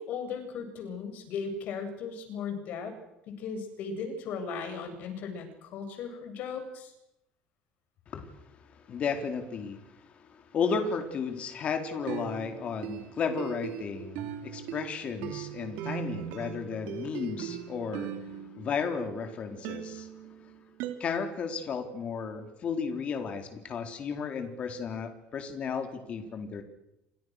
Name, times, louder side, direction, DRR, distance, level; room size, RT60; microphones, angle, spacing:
voice 1, 0.0-3.0 3.3-6.9, left 5 dB, 55° left, 6 dB, 7.9 m, -37 dB
voice 2, 8.6-20.1 20.4-20.5 21.0-26.6, left 5 dB, 35° left, 6 dB, 4.0 m, -34 dB
sound 1, 11.9-19.2 19.6-20.9, right 11 dB, 80° right, 3.8 m, -39 dB
30.0 x 26.0 x 6.6 m, 0.86 s
cardioid pair, 155°, 4 cm